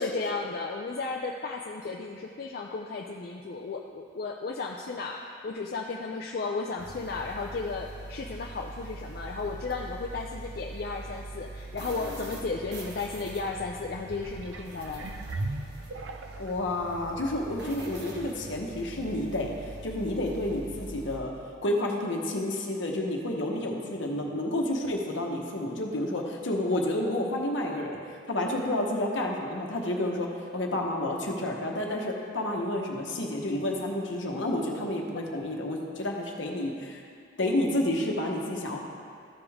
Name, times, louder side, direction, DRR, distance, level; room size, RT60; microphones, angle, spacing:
voice 1, 0.0-15.1, left 4 dB, 50° left, 1 dB, 0.4 m, -34 dB
sound 1, 6.8-21.2, right 2 dB, 55° right, 1.2 m, -43 dB
sound 2, 14.1-16.6 17.3-17.4, right 2 dB, 75° right, 0.5 m, -38 dB
voice 2, 16.4-19.5 19.8-21.3 21.6-30.3 30.5-37.0 37.4-38.8, left 1 dB, 70° left, 0 dB, 1.1 m, -30 dB
13.5 x 5.2 x 3.5 m, 2.3 s
head